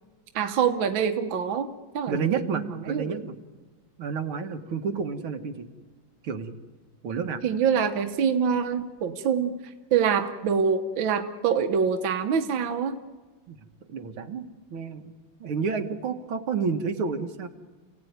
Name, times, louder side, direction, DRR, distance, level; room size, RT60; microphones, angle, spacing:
voice 1, 0.4-1.7 1.9-2.3 2.5-3.2 7.4-9.6 9.9-13.0, right 7 dB, 75° right, 7 dB, 1.9 m, -25 dB
voice 2, 2.1-3.4 4.0-5.7 6.2-6.5 7.0-7.4 13.5-13.6 13.9-15.1 15.4-17.5, right 5 dB, 90° right, 6 dB, 2.4 m, -30 dB
29.0 x 17.0 x 9.5 m, 1.3 s
omnidirectional pair, 2.2 m